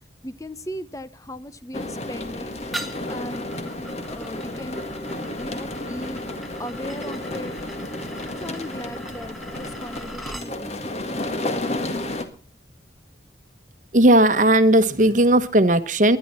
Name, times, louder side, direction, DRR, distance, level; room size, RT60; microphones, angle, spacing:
voice 1, 0.2-2.6 3.1-3.5 4.1-4.8 5.4-6.2 6.6-7.6 8.4-11.1, equal, 20° left, 13 dB, 0.7 m, -37 dB
sound 1, 1.7-12.3, left 1 dB, 35° left, 1.9 m, -32 dB
sound 2, 2.7-10.5, right 1 dB, ahead, 1.4 m, -40 dB
voice 2, 13.9-16.2, right 1 dB, 45° right, 12 dB, 1.1 m, -16 dB
22.5 x 11.0 x 4.3 m, 0.35 s
head